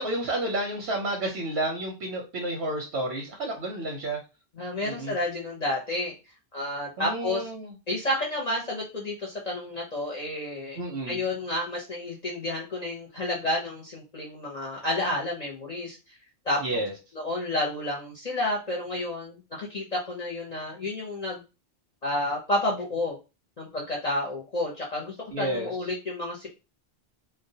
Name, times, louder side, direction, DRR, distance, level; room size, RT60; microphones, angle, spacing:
voice 1, 0.0-4.2 4.8-5.1 7.0-7.7 10.8-11.2 16.6-16.9 25.3-25.8, right 1 dB, 90° right, 0 dB, 0.9 m, -31 dB
voice 2, 4.6-6.1 6.5-7.4 7.9-10.8 11.1-16.0 16.5-16.6 17.1-21.4 22.0-23.2 23.6-26.5, left 1 dB, 45° left, -3 dB, 0.6 m, -30 dB
2.2 x 2.1 x 2.7 m, 0.29 s
omnidirectional pair, 1.1 m